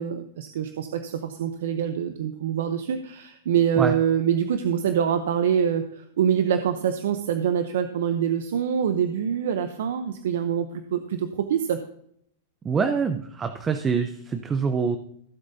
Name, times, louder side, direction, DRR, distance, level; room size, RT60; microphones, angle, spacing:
voice 1, 0.0-11.8, right 8 dB, 75° right, 8 dB, 0.8 m, -25 dB
voice 2, 12.6-15.0, right 5 dB, 20° right, 7 dB, 0.7 m, -25 dB
16.0 x 7.5 x 2.8 m, 0.69 s
hypercardioid pair, 125°, 0 cm